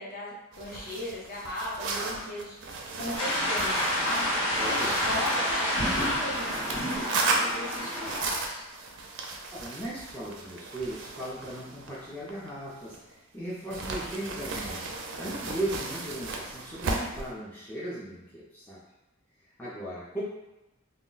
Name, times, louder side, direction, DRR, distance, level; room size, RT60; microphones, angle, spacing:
voice 1, 0.0-4.2 4.6-8.6 20.2-20.3, left 1 dB, 45° left, -5 dB, 0.7 m, -37 dB
sound 1, 0.5-13.2 13.7-17.3, right 3 dB, 60° right, 0.4 m, -35 dB
sound 2, 3.2-8.2, equal, 90° left, 0.9 m, -28 dB
voice 2, 4.6-5.0 9.5-18.8 19.6-20.2, right 1 dB, 10° left, -9 dB, 0.4 m, -37 dB
2.2 x 2.0 x 3.8 m, 0.96 s
head